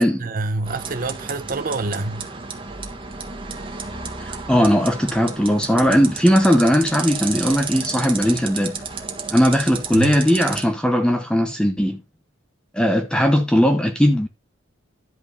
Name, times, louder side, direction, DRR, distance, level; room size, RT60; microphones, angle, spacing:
voice 1, 0.0-2.3 9.9-10.2, right 3 dB, 45° right, 1.0 m, -27 dB
sound 1, 0.6-10.6, right 5 dB, 25° right, 1.6 m, -32 dB
voice 2, 4.2-8.8 9.3-12.0 12.7-14.3, equal, 5° left, 0.9 m, -18 dB
11.0 x 4.7 x 5.3 m
head